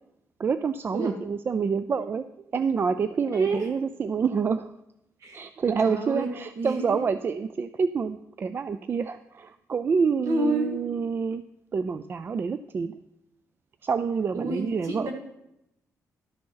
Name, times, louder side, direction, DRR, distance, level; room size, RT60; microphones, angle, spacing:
voice 1, 0.4-2.2 2.5-4.7 5.3-11.4 11.7-13.0 13.8-15.1, right 5 dB, 40° right, 12 dB, 0.4 m, -27 dB
voice 2, 3.3-3.7 5.2-5.5 5.8-6.9 10.3-10.8 14.3-15.1, right 2 dB, 65° right, 2 dB, 2.3 m, -29 dB
12.0 x 5.2 x 5.6 m, 0.85 s
cardioid pair, 115°, 6 cm